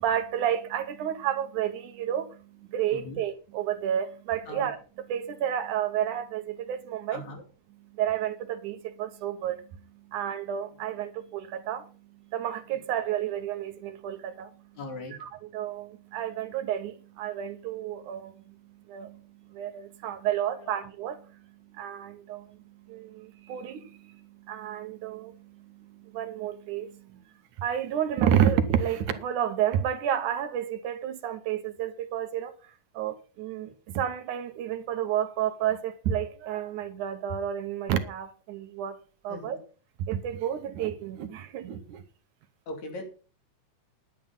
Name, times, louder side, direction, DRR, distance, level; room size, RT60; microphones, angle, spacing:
voice 1, 0.0-2.4 2.7-7.3 7.9-9.7 10.1-11.9 12.3-14.5 15.2-18.6 18.9-19.2 19.5-21.3 21.7-22.6 22.9-27.2 27.6-32.5 32.9-39.0 39.2-39.6 40.1-42.0, right 10 dB, 70° right, 2.2 m, -30 dB
voice 2, 7.1-7.4 14.8-15.1 20.6-20.8 39.3-39.6 42.7-43.0, left 2 dB, 60° left, 3.9 m, -39 dB
11.0 x 9.4 x 5.4 m
omnidirectional pair, 3.9 m